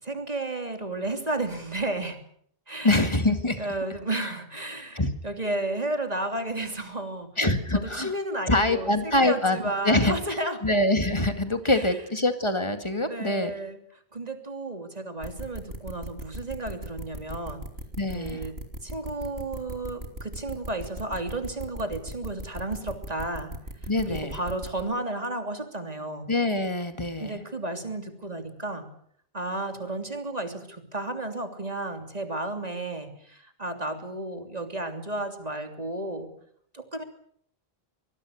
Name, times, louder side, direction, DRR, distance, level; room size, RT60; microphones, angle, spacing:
voice 1, 0.0-2.2 2.7-3.0 3.6-7.3 7.7-10.6 11.7-11.9 13.1-13.8 14.1-17.6 18.1-18.6 18.8-23.5 24.1-26.3 27.2-28.9 29.3-36.3 36.7-37.0, right 2 dB, 40° right, 6 dB, 3.2 m, -32 dB
voice 2, 2.8-3.6 5.0-5.1 7.4-8.1 8.5-10.1 10.6-13.5 18.0-18.4 23.9-24.4 26.3-27.4, left 2 dB, 25° left, 8 dB, 2.3 m, -24 dB
sound 1, 15.2-24.8, right 1 dB, 70° right, 3.5 m, -38 dB
25.0 x 21.0 x 6.6 m, 0.64 s
omnidirectional pair, 1.1 m